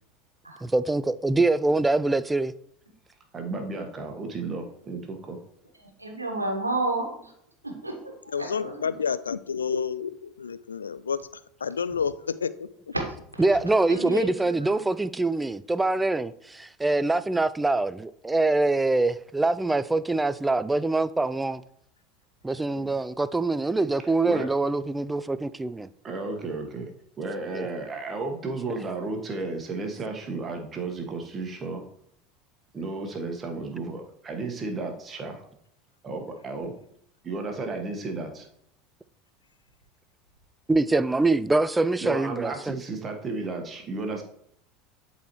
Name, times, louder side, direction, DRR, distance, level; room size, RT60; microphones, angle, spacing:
voice 1, 0.6-2.5 13.4-21.6 22.4-25.9 27.5-27.7 40.7-42.7, right 2 dB, 10° right, 0.3 m, -24 dB
voice 2, 3.3-5.4 22.7-22.9 24.3-24.5 26.0-31.8 32.7-35.4 36.0-36.7 37.2-38.5 42.0-44.2, right 3 dB, 25° right, 1.4 m, -33 dB
voice 3, 5.8-7.3 7.6-8.9 13.3-13.4 13.9-14.8, right 2 dB, 85° right, 1.3 m, -32 dB
voice 4, 8.3-11.2 11.6-12.7, left 6 dB, 75° left, 0.3 m, -29 dB
11.0 x 4.2 x 3.1 m
figure-of-eight pair, 75°, 0 cm